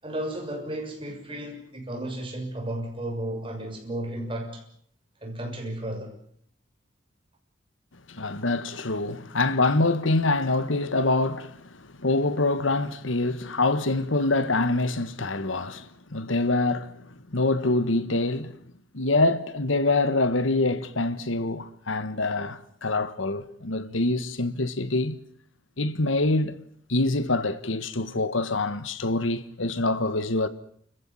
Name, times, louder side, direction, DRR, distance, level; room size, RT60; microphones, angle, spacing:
voice 1, 0.0-4.6 5.2-6.1, right 1 dB, 25° right, 6.7 m, -33 dB
voice 2, 8.1-18.6 18.9-25.2 25.8-26.6 26.9-30.5, left 2 dB, 85° left, 1.5 m, -25 dB
29.5 x 15.0 x 9.8 m
head